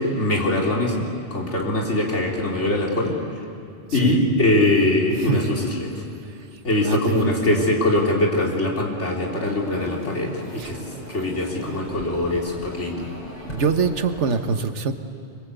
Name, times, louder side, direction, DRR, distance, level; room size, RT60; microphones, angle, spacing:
voice 1, 0.0-3.1 3.9-6.0 6.6-10.8 11.1-13.0, left 1 dB, 85° left, -1 dB, 3.8 m, -22 dB
voice 2, 6.8-7.7 10.6-10.8 13.4-14.9, right 5 dB, 85° right, 8 dB, 1.5 m, -24 dB
sound 1, 9.2-14.4, equal, 35° left, 6.9 m, -39 dB
25.5 x 22.5 x 8.3 m, 2.6 s
omnidirectional pair, 1.2 m